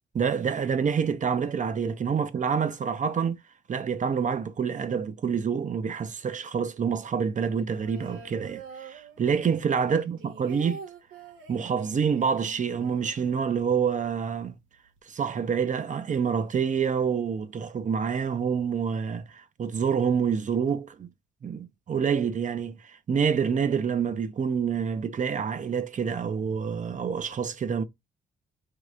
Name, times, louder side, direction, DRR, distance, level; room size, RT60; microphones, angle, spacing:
voice 1, 0.1-3.4 3.7-10.8 11.5-14.5 15.1-21.1 21.4-27.8, right 6 dB, 40° right, 0.7 m, -27 dB
sound 1, 7.4-9.6 9.9-13.8 14.1-14.2 14.5-15.0, right 6 dB, 85° right, 1.1 m, -46 dB
4.7 x 3.2 x 2.4 m
cardioid pair, 90°, 20 cm